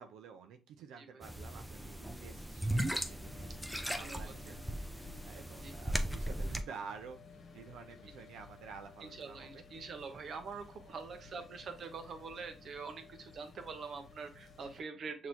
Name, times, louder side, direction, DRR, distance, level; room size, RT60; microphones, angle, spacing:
voice 1, 0.0-9.7 10.8-11.0 12.4-12.7 14.6-14.7, right 6 dB, 85° right, 6 dB, 0.5 m, -51 dB
sound 1, 1.2-6.6, right 1 dB, ahead, 0.6 m, -37 dB
sound 2, 3.1-14.8, left 4 dB, 45° left, 1.2 m, -56 dB
voice 2, 4.0-4.6 5.6-5.7 9.0-15.3, right 5 dB, 55° right, 6 dB, 1.0 m, -45 dB
6.1 x 3.0 x 2.7 m, 0.29 s
cardioid pair, 90°, 0 cm